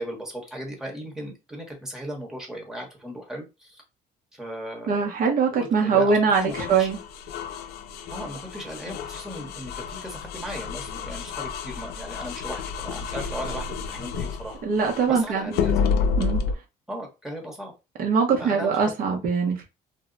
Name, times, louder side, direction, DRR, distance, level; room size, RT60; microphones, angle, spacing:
voice 1, 0.0-3.8 4.3-5.1 5.5-6.9 8.1-14.6 15.1-15.9 16.9-17.7 18.4-18.8, equal, 5° right, 0.9 m, -37 dB
voice 2, 4.9-7.0 14.6-15.5 16.2-16.4 18.0-19.6, right 5 dB, 55° right, 0.6 m, -22 dB
sound 1, 6.3-15.1 15.5-16.5, left 6 dB, 75° left, 0.4 m, -30 dB
2.1 x 2.0 x 3.7 m
cardioid pair, 110°, 17 cm